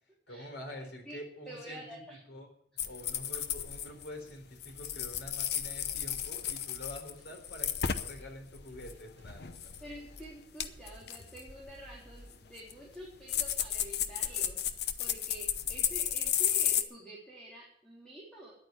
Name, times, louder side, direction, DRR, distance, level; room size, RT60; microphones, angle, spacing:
voice 1, 0.3-2.5 2.8-9.9, left 1 dB, 80° left, 3 dB, 3.9 m, -47 dB
voice 2, 1.5-2.2 9.8-18.5, right 1 dB, 5° left, -5 dB, 3.6 m, -48 dB
sound 1, 2.8-4.3 4.6-8.2 8.5-9.8 10.2-10.3 10.6-16.8, left 9 dB, 60° left, 0.8 m, -33 dB
sound 2, 4.7-12.5, equal, 40° right, 3.7 m, -56 dB
10.5 x 9.1 x 9.3 m, 0.65 s
head